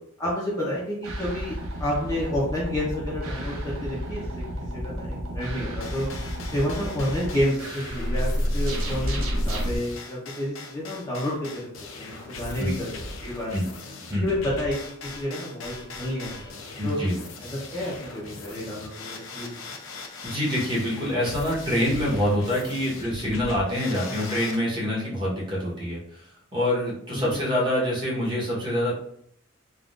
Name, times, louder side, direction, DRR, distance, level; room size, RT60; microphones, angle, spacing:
voice 1, 0.2-6.1 6.5-13.5 14.2-14.8 15.0-17.0 17.4-19.8 24.0-24.3 27.1-27.4, left 1 dB, 15° left, -6 dB, 0.6 m, -30 dB
sound 1, 1.0-9.8, equal, 75° right, 0.7 m, -30 dB
sound 2, 3.2-9.4, left 2 dB, 40° right, 1.4 m, -45 dB
sound 3, 5.8-24.6, left 3 dB, 65° left, 0.5 m, -40 dB
voice 2, 16.8-17.2 20.2-26.3 26.5-28.9, left 1 dB, 20° right, -6 dB, 1.0 m, -26 dB
3.5 x 2.4 x 2.4 m, 0.67 s
head